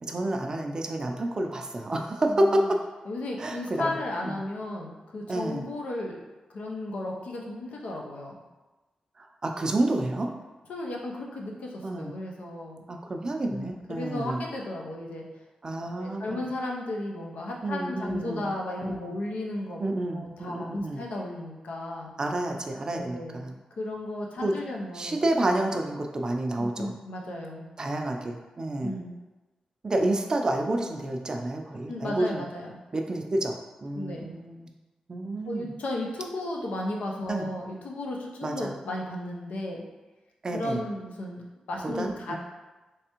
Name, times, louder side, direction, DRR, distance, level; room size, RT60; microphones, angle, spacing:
voice 1, 0.0-2.8 3.4-3.9 4.2-4.4 5.3-5.7 9.2-10.3 11.8-12.1 12.9-14.4 15.6-16.4 17.6-18.5 18.9-19.1 19.8-21.0 22.2-23.5 24.4-24.5 24.9-26.9 27.8-28.9 29.8-32.4 32.9-33.5 33.8-34.7 35.1-35.7 37.3-37.5 38.4-38.7 40.4-40.8 42.0-42.4, right 1 dB, 35° right, 3 dB, 0.4 m, -29 dB
voice 2, 2.2-2.7 3.1-6.2 6.5-8.4 10.7-12.8 13.5-15.3 15.9-19.8 20.1-22.1 22.9-23.4 23.8-25.2 26.6-27.7 28.8-29.2 31.9-32.8 33.9-34.3 35.4-39.9 40.5-42.4, left 1 dB, 85° left, -1 dB, 0.6 m, -34 dB
3.4 x 3.2 x 2.9 m, 1.2 s
wide cardioid pair, 110°, 2 cm